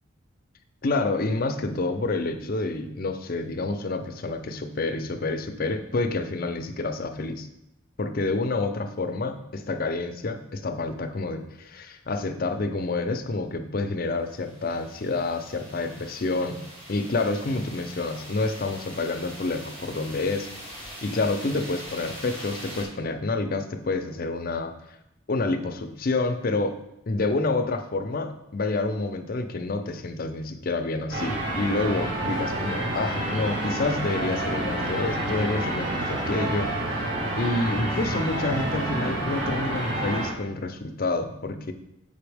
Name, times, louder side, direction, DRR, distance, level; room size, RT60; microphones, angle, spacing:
voice 1, 0.8-7.5 8.0-16.6 16.9-20.5 21.0-24.7 25.3-26.8 27.1-36.9 37.4-41.7, left 3 dB, 45° left, 7 dB, 0.5 m, -28 dB
sound 1, 14.3-22.9, equal, 30° right, 2.3 m, -42 dB
sound 2, 31.1-40.3, right 1 dB, 55° right, 1.8 m, -28 dB
7.0 x 5.3 x 3.4 m, 0.84 s
head